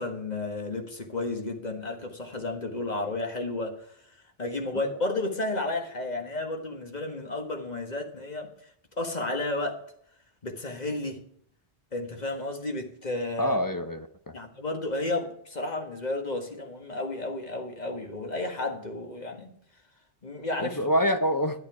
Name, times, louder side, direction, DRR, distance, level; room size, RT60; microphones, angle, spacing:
voice 1, 0.0-3.8 4.4-8.5 9.0-9.8 10.4-11.2 11.9-13.6 14.3-19.5 20.2-20.8, left 2 dB, 40° left, 4 dB, 1.6 m, -32 dB
voice 2, 13.4-14.3 20.6-21.6, equal, 20° left, 7 dB, 0.7 m, -26 dB
11.0 x 8.7 x 4.8 m, 0.67 s
omnidirectional pair, 1.1 m